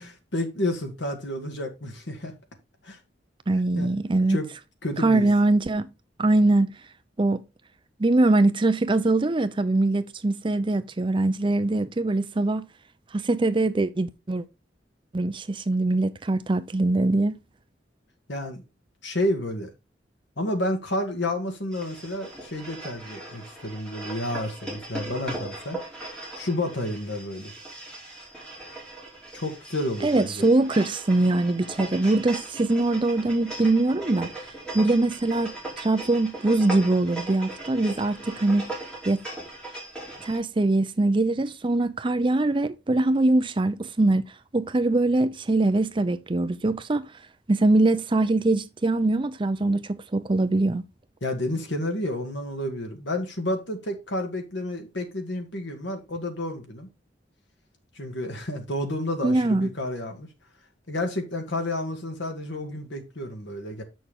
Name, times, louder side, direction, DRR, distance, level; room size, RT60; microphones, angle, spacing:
voice 1, 0.0-2.3 2.8-3.0 3.7-3.9 4.3-4.5 4.8-5.3 18.3-18.6 19.0-19.7 20.4-25.8 26.3-27.5 29.3-30.5 51.2-56.9 58.0-60.3 60.9-63.8, left 1 dB, 75° left, 2.0 m, -30 dB
voice 2, 3.5-4.4 5.0-5.9 6.2-6.7 7.2-7.4 8.0-12.7 13.1-14.4 15.1-17.4 30.0-34.3 34.7-38.7 39.1-39.2 40.2-44.2 44.5-47.1 47.5-50.8 59.2-59.7, right 2 dB, 25° right, 0.5 m, -22 dB
sound 1, 21.7-40.4, right 2 dB, 5° left, 2.9 m, -39 dB
8.2 x 6.2 x 3.6 m
head